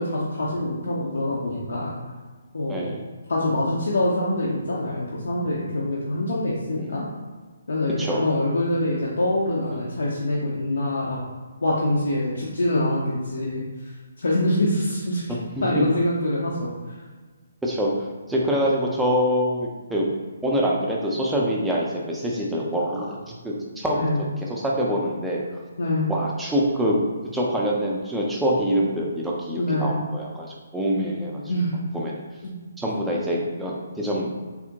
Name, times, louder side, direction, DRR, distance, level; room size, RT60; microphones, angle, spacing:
voice 1, 0.0-1.9 2.5-2.9 3.3-7.0 7.7-11.2 11.6-13.0 13.2-13.6 14.2-15.2 15.6-17.0 23.9-24.2 25.8-26.1 29.6-30.0 31.5-31.7 32.4-32.5, left 1 dB, 65° left, -5 dB, 0.5 m, -25 dB
voice 2, 2.7-3.0 6.8-7.0 8.0-8.3 15.6-15.7 17.6-17.9 18.3-20.1 20.4-23.2 23.4-24.1 24.4-25.4 26.1-27.0 27.3-31.4 31.9-32.2 32.8-34.4, equal, 5° right, -4 dB, 0.4 m, -25 dB
3.5 x 2.1 x 2.7 m, 1.4 s
figure-of-eight pair, 135°, 0 cm